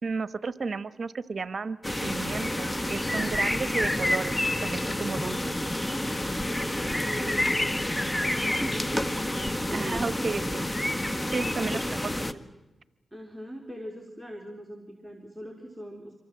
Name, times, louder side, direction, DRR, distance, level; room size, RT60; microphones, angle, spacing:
voice 1, 0.0-5.4 9.7-10.6 11.3-11.8, right 4 dB, 60° right, 15 dB, 1.2 m, -33 dB
sound 1, 1.8-12.3, left 1 dB, 20° left, 1.6 m, -29 dB
voice 2, 6.4-10.3 11.6-12.5 13.1-16.1, equal, 5° right, 2 dB, 4.2 m, -41 dB
27.5 x 24.0 x 7.7 m, 1.1 s
supercardioid pair, 40°, 0 cm